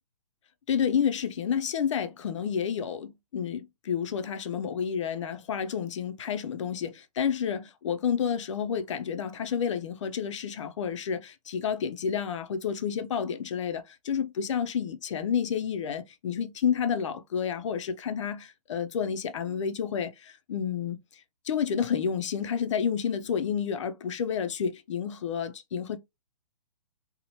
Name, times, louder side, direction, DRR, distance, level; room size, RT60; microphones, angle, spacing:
voice 1, 0.7-26.0, left 7 dB, 50° left, 0.4 m, -30 dB
2.8 x 2.0 x 2.8 m
hypercardioid pair, 155°, 20 cm